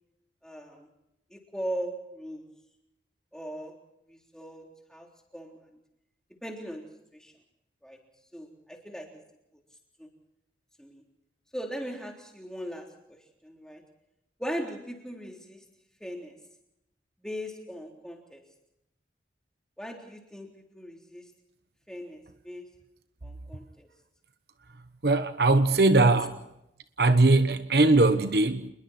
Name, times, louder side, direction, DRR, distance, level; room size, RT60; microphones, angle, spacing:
voice 1, 0.4-0.9 1.3-2.5 3.3-5.1 5.3-5.6 6.4-7.3 7.8-8.0 8.3-9.2 10.0-10.1 10.8-11.0 11.5-13.2 13.4-13.8 14.4-15.6 16.0-16.4 17.2-18.4 19.8-21.2 21.9-22.7 23.2-23.9, equal, 5° left, 3.6 m, -39 dB
voice 2, 25.0-26.4 27.0-28.7, right 2 dB, 65° right, 1.2 m, -21 dB
28.0 x 21.5 x 4.4 m
head